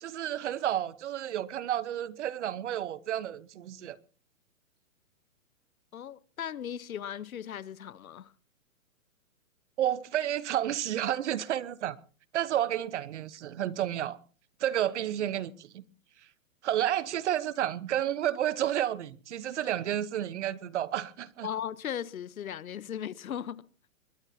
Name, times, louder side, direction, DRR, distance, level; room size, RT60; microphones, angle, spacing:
voice 1, 0.0-4.0 9.8-12.0 12.3-14.2 14.6-15.8 16.6-21.5, right 11 dB, 55° right, 1.1 m, -31 dB
voice 2, 5.9-8.3 21.4-23.9, left 9 dB, 85° left, 1.0 m, -37 dB
22.0 x 21.5 x 2.8 m
hypercardioid pair, 150°, 41 cm